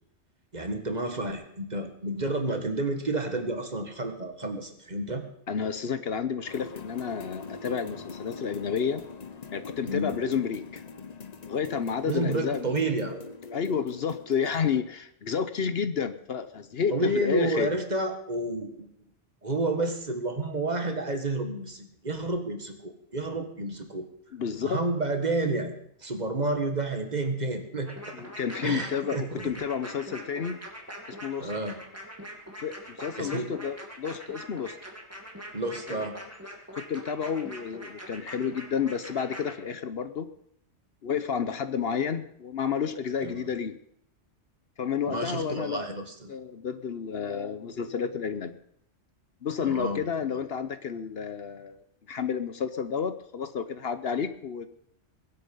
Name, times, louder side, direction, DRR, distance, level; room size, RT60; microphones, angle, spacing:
voice 1, 0.5-5.2 9.8-10.2 12.1-13.2 16.9-18.9 19.4-24.1 24.6-25.7 26.0-27.9 28.6-29.4 31.4-31.8 33.2-33.5 35.5-36.2 43.2-43.4 45.1-46.3 49.6-50.0, right 2 dB, 35° right, 6 dB, 1.8 m, -30 dB
voice 2, 5.5-9.0 9.5-10.8 11.5-12.9 13.5-17.8 24.3-24.8 28.1-30.6 31.1-31.5 32.6-34.8 35.9-36.1 36.7-40.3 41.0-43.8 44.8-46.0 46.3-48.6 49.4-51.8 52.1-54.7, left 7 dB, 60° left, 12 dB, 1.0 m, -31 dB
sound 1, 6.4-14.8, left 4 dB, 40° left, 0.9 m, -43 dB
sound 2, 27.8-39.5, equal, 10° right, 2.4 m, -43 dB
22.0 x 8.3 x 5.4 m, 0.71 s
omnidirectional pair, 1.2 m